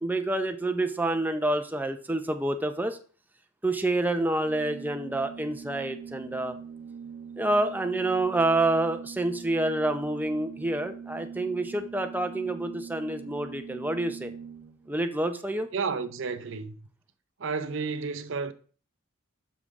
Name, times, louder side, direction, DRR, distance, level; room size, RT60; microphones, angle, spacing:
voice 1, 0.0-3.0 3.6-6.6 7.4-14.3 14.9-15.7, right 2 dB, 10° right, 0.6 m, -28 dB
Organ, 4.3-15.0, right 6 dB, 40° right, 1.0 m, -43 dB
voice 2, 15.7-16.8 17.4-18.5, right 5 dB, 65° right, 0.7 m, -31 dB
7.2 x 6.3 x 3.6 m
head